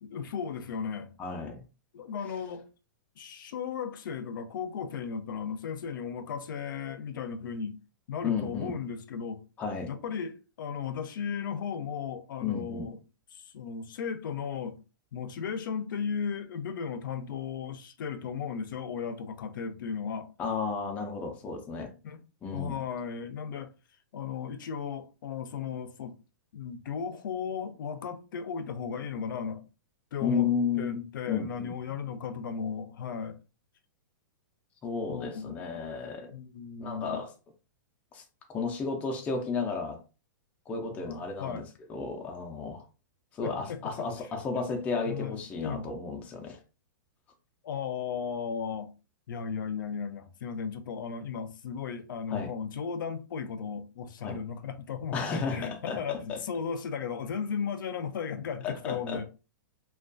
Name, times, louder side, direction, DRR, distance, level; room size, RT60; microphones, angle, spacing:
voice 1, 0.0-1.1 1.9-2.7 3.2-7.8 8.1-9.4 9.9-13.0 13.3-14.8 15.1-20.3 22.0-22.2 22.5-23.7 24.1-26.2 26.5-29.6 30.1-30.5 30.8-33.4 35.1-35.9 36.3-37.2 40.9-41.7 43.4-44.3 45.1-45.9 47.6-48.9 49.3-59.3, left 6 dB, 75° left, 0.4 m, -36 dB
voice 2, 1.2-1.6 8.2-8.8 9.6-9.9 12.4-12.9 20.4-21.9 22.4-22.9 30.2-31.7 34.8-36.3 36.8-37.3 38.1-38.2 38.5-40.0 40.7-41.6 41.9-42.8 43.3-46.6 52.3-52.5 54.2-54.4 55.1-56.4 58.6-59.3, left 5 dB, 10° left, 0.3 m, -33 dB
2.3 x 2.2 x 2.5 m
hypercardioid pair, 160°, 11 cm